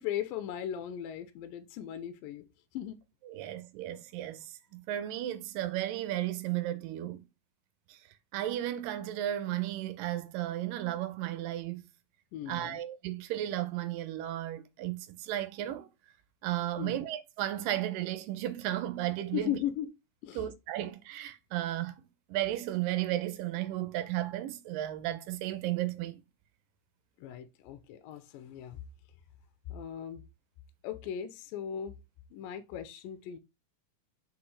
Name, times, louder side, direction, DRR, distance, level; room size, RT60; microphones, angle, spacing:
voice 1, 0.0-2.4 2.7-3.0 12.3-12.8 16.8-17.0 19.3-19.9 20.2-20.5 27.2-28.8 29.7-30.2 30.8-32.0 32.3-33.4, left 10 dB, 85° left, 2.3 m, -37 dB
voice 2, 3.3-4.5 4.7-7.2 7.9-8.0 8.3-11.8 12.5-15.9 16.4-19.5 20.4-21.9 22.3-26.2, right 13 dB, 80° right, 2.1 m, -34 dB
6.1 x 5.3 x 3.1 m
omnidirectional pair, 4.2 m